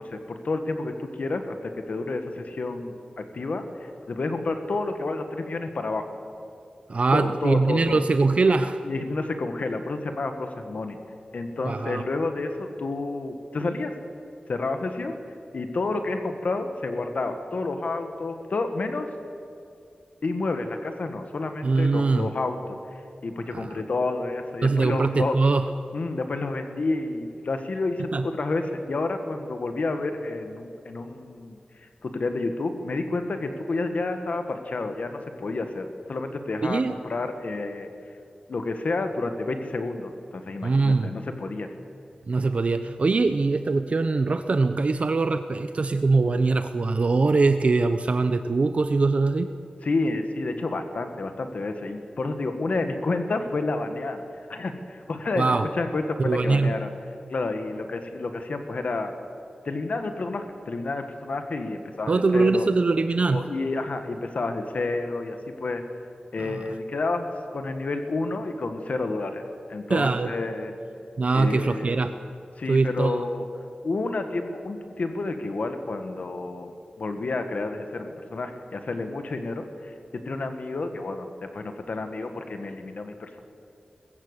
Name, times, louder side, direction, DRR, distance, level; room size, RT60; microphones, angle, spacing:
voice 1, 0.0-6.1 7.1-8.0 8.8-11.0 11.3-13.9 14.5-15.2 15.5-19.1 20.2-25.4 25.9-31.6 32.0-37.9 38.5-41.7 49.8-54.2 54.5-56.9 57.3-59.1 59.6-62.7 63.3-65.8 66.3-67.3 67.5-69.4 69.7-70.7 71.3-72.0 72.6-73.5 73.8-76.7 77.0-83.4, left 3 dB, 70° left, 6 dB, 1.6 m, -30 dB
voice 2, 6.9-8.8 11.6-12.0 21.6-22.3 23.5-23.7 24.6-25.7 28.1-28.2 36.6-36.9 40.6-41.1 42.3-49.5 55.4-55.6 56.2-56.7 62.1-63.4 66.4-66.7 69.9-70.3 71.2-72.2 72.7-73.2, right 3 dB, 55° right, 9 dB, 0.7 m, -22 dB
20.5 x 15.0 x 8.3 m, 2.5 s
wide cardioid pair, 90°, 3 cm